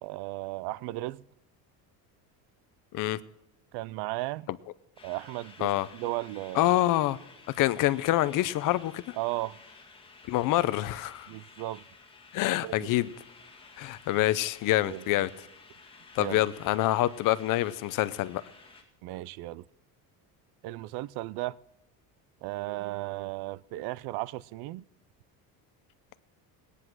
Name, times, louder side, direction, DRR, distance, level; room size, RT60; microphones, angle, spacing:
voice 1, 0.0-1.2 3.7-4.5 5.0-6.8 9.1-9.6 11.3-11.8 12.6-12.9 14.8-15.1 16.2-16.4 19.0-19.6 20.6-21.6 22.4-24.8, right 18 dB, 75° right, 0.5 m, -35 dB
sound 1, 5.0-18.8, left 4 dB, 15° left, 2.2 m, -53 dB
voice 2, 6.5-7.2 7.6-9.1 10.3-11.3 12.3-13.1 13.8-15.3 16.1-18.4, left 15 dB, 55° left, 0.6 m, -26 dB
18.0 x 9.9 x 6.1 m
cardioid pair, 175°, 40 cm